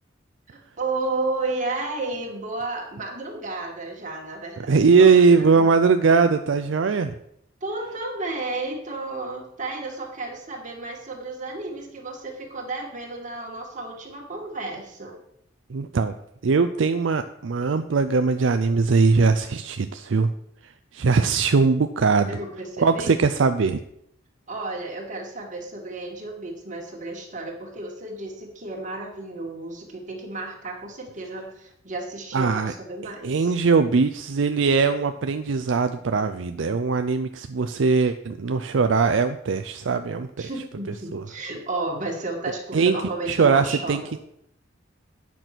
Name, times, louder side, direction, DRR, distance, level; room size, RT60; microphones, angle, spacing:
voice 1, 0.5-5.7 7.6-15.2 22.3-23.2 24.5-33.6 40.4-44.1, right 2 dB, 40° right, 0 dB, 2.2 m, -32 dB
voice 2, 4.7-7.1 15.7-16.1 16.4-20.3 20.9-22.3 22.8-23.8 32.3-32.7 33.2-40.5 41.1-41.2 42.7-43.0 43.3-44.0, right 4 dB, 70° right, 9 dB, 0.5 m, -20 dB
9.2 x 6.0 x 6.0 m, 0.74 s
head